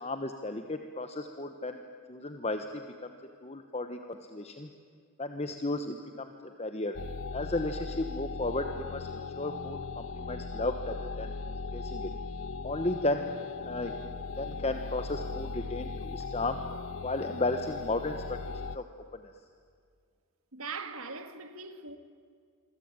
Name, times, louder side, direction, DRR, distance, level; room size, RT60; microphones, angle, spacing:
voice 1, 0.0-1.8 2.1-3.1 3.4-4.7 5.2-6.3 6.6-7.0 7.3-11.3 11.7-12.1 12.6-13.2 13.6-13.9 14.4-16.6 17.0-18.4 18.7-18.8, left 2 dB, 30° left, 1.2 m, -34 dB
sound 1, 6.9-18.8, left 4 dB, 60° left, 0.6 m, -38 dB
voice 2, 20.5-22.0, right 4 dB, 75° right, 2.0 m, -40 dB
27.5 x 24.0 x 9.0 m
head